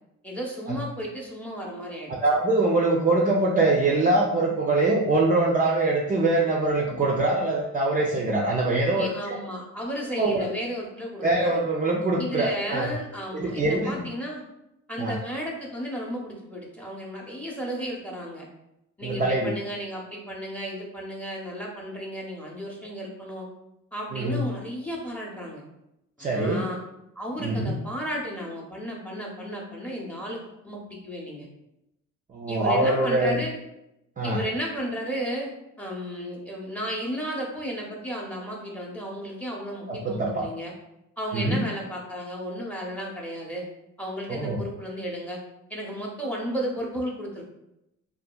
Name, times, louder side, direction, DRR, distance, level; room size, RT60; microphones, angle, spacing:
voice 1, 0.2-2.1 9.0-11.6 12.2-14.4 14.9-18.5 19.0-23.5 23.9-25.6 26.2-26.8 27.2-31.5 32.5-33.6 34.2-35.5 35.8-40.7 41.2-43.7 44.0-45.4 45.7-47.4, equal, 5° left, -2 dB, 0.6 m, -34 dB
voice 2, 2.2-9.4 10.2-10.5 11.2-12.9 13.3-14.0 15.0-15.2 19.0-19.5 24.1-24.5 26.2-26.6 27.4-27.8 32.3-33.4 34.2-34.4 39.9-40.5 41.3-41.6 44.3-44.6, right 2 dB, 30° right, -2 dB, 0.3 m, -23 dB
2.7 x 2.4 x 2.2 m, 0.86 s
cardioid pair, 90°, 30 cm